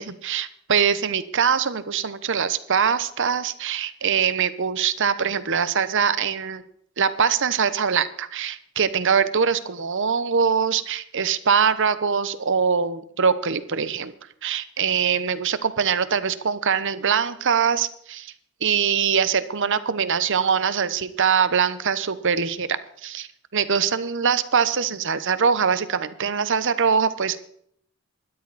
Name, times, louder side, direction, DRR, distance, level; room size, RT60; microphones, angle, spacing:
voice 1, 0.0-6.6 7.0-14.1 14.4-18.3 18.6-27.4, right 6 dB, 60° right, 14 dB, 1.0 m, -23 dB
19.5 x 13.0 x 4.2 m, 0.67 s
head